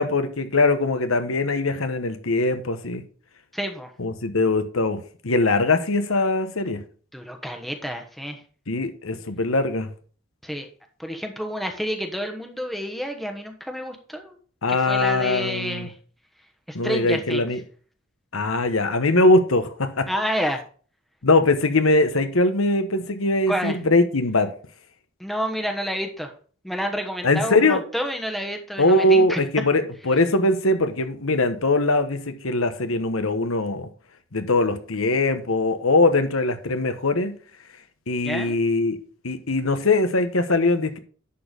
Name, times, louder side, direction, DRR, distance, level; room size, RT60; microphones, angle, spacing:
voice 1, 0.0-3.0 4.0-6.8 8.7-9.9 14.6-15.9 16.7-17.6 18.3-20.1 21.2-24.5 27.2-27.8 28.8-33.9 34.3-37.4 38.1-39.0 39.2-41.0, left 2 dB, 85° left, 1.2 m, -21 dB
voice 2, 3.5-3.9 7.1-8.4 10.4-10.7 11.0-14.4 14.7-16.0 16.7-17.4 20.1-20.6 23.5-23.8 25.2-26.3 26.6-29.4 38.2-38.6, equal, ahead, 1.1 m, -29 dB
11.0 x 4.5 x 5.1 m
head